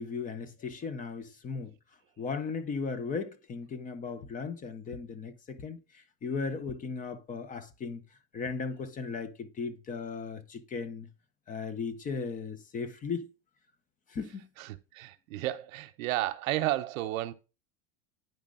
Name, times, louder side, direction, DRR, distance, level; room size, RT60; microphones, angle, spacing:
voice 1, 0.0-1.7 2.2-8.0 8.3-11.1 11.5-13.3 14.1-14.5, left 5 dB, 20° left, 0.7 m, -36 dB
voice 2, 14.6-17.3, right 15 dB, 75° right, 0.9 m, -32 dB
9.4 x 5.2 x 3.7 m
supercardioid pair, 140°, 41 cm